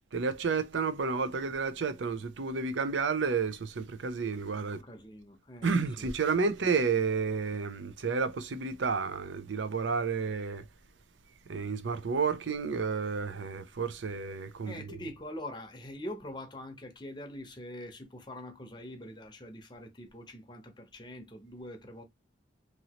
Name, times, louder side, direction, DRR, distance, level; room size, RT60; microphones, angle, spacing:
voice 1, 0.1-4.8 5.6-10.6 11.5-15.0, right 5 dB, 90° right, 0.6 m, -31 dB
voice 2, 4.7-5.7 6.0-6.1 14.7-22.0, left 1 dB, 25° left, 0.8 m, -44 dB
3.0 x 2.7 x 2.9 m
head